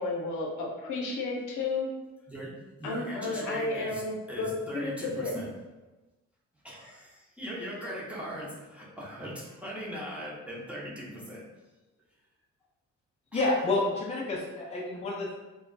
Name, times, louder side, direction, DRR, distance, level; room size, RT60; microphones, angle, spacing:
voice 1, 0.0-1.9 2.8-5.3, left 3 dB, 80° left, 0 dB, 0.7 m, -32 dB
voice 2, 2.3-4.0 4.3-5.5 6.6-11.4 13.3-13.5, equal, 5° right, -6 dB, 0.9 m, -40 dB
voice 3, 13.3-15.3, left 2 dB, 20° left, -3 dB, 0.6 m, -29 dB
2.3 x 2.1 x 3.9 m, 1.1 s
cardioid pair, 90°, 30 cm